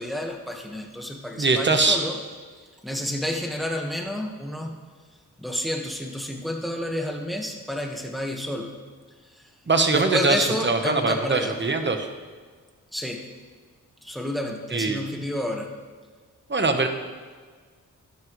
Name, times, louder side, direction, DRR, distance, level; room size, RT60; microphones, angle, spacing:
voice 1, 0.0-2.2 2.6-4.7 5.4-8.7 9.2-9.5 9.9-11.6 12.9-13.3 14.0-15.7, left 1 dB, ahead, 1 dB, 1.4 m, -30 dB
voice 2, 1.4-2.0 9.7-12.1 14.7-15.0 16.5-16.9, right 3 dB, 35° right, 6 dB, 1.1 m, -22 dB
12.5 x 12.0 x 3.2 m, 1.5 s
wide cardioid pair, 100°, 33 cm